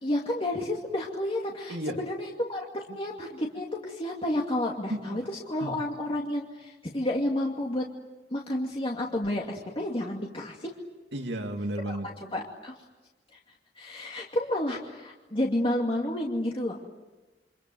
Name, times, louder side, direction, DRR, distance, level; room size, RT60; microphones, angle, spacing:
voice 1, 0.0-7.8 8.3-10.7 11.8-12.7 13.3-13.4 13.8-16.8, left 1 dB, 35° left, 2.5 m, -31 dB
voice 2, 4.9-5.3 5.6-5.7 11.1-12.1, right 1 dB, 75° right, 2.6 m, -33 dB
29.0 x 26.0 x 7.9 m
head